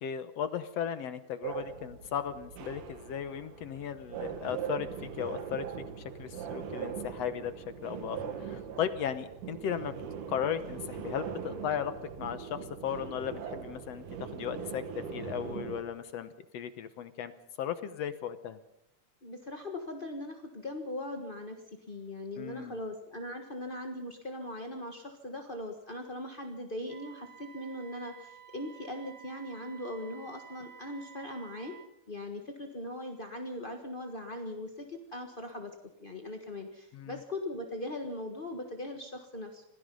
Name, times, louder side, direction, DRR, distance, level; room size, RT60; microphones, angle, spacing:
voice 1, 0.0-5.7 6.0-7.5 7.8-9.9 10.3-17.3 17.6-18.6 22.4-22.8 36.9-37.2, left 9 dB, 65° left, 11 dB, 1.9 m, -36 dB
sound 1, 1.4-15.8, right 7 dB, 90° right, 3.1 m, -41 dB
voice 2, 19.2-21.6 21.9-31.8 32.1-35.7 36.0-39.6, left 1 dB, 40° left, 3 dB, 0.7 m, -40 dB
Wind instrument woodwind instrument, 26.9-31.9, right 9 dB, 55° right, 2.8 m, -52 dB
27.0 x 18.0 x 5.4 m, 0.76 s
omnidirectional pair, 3.5 m